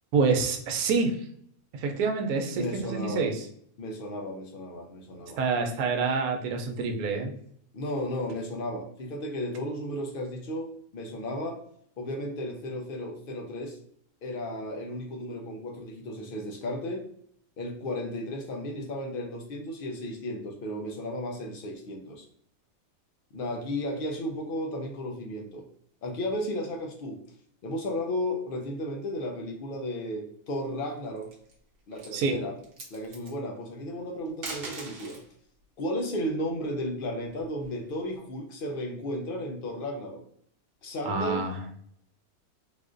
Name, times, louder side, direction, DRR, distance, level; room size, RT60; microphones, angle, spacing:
voice 1, 0.1-1.1 1.8-3.4 5.4-7.3 32.1-32.3 41.1-41.6, right 4 dB, 80° right, 4 dB, 1.1 m, -27 dB
voice 2, 2.5-3.3 3.8-5.4 7.7-11.6 12.0-13.8 14.2-17.0 17.6-22.3 23.3-25.7 26.0-27.2 27.6-31.3 31.9-32.5 32.9-35.2 35.8-40.2 40.8-41.4, left 1 dB, 75° left, 2 dB, 0.5 m, -34 dB
sound 1, 31.0-31.5 31.9-32.2 32.6-33.3 34.3-35.3 36.8-38.0, right 3 dB, 60° right, 1.0 m, -41 dB
3.6 x 2.5 x 2.4 m, 0.65 s
omnidirectional pair, 1.6 m